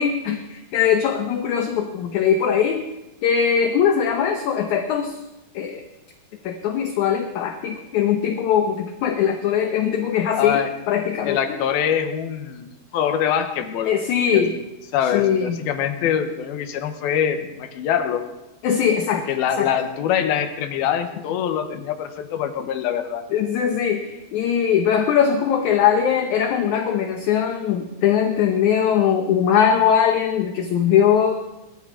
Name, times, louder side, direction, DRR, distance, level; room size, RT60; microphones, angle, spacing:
voice 1, 0.0-2.8 3.2-5.2 5.5-5.8 6.4-11.6 13.9-14.5 15.1-15.6 18.6-19.2 19.6-19.7 23.3-31.4, left 8 dB, 70° left, 5 dB, 1.9 m, -20 dB
voice 2, 10.4-10.7 11.2-13.9 14.3-14.5 14.9-18.3 19.3-23.2, left 9 dB, 85° left, 7 dB, 3.0 m, -24 dB
21.5 x 13.0 x 3.9 m, 0.99 s
omnidirectional pair, 4.3 m